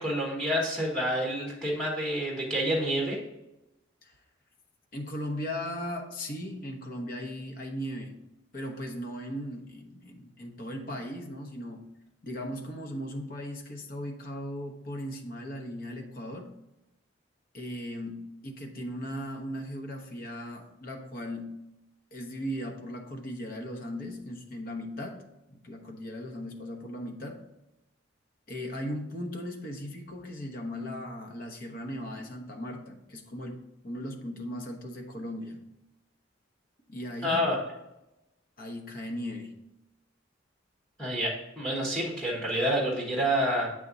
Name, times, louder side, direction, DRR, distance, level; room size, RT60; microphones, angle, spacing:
voice 1, 0.0-3.2 37.2-37.6 41.0-41.3 41.6-43.7, equal, 5° left, -3 dB, 1.3 m, -28 dB
voice 2, 4.9-8.2 8.5-11.9 12.2-16.5 17.5-21.5 22.1-25.2 25.5-27.4 28.5-35.6 36.9-37.4 38.6-39.6, equal, 50° left, 2 dB, 0.9 m, -37 dB
7.8 x 3.6 x 4.0 m, 0.93 s
head